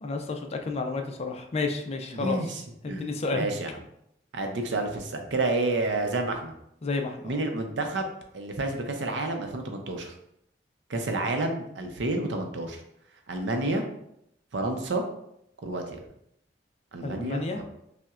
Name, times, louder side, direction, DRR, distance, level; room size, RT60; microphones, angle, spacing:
voice 1, 0.0-2.4 2.8-3.5 6.8-7.4 17.0-17.6, left 3 dB, 35° left, 4 dB, 0.4 m, -31 dB
voice 2, 2.1-2.6 2.9-3.7 4.3-6.5 7.2-8.1 8.3-10.1 10.9-12.8 13.3-13.8 14.5-15.0 15.6-16.0 16.9-17.6, right 2 dB, 90° right, 4 dB, 0.6 m, -29 dB
5.5 x 2.1 x 2.4 m, 0.76 s
head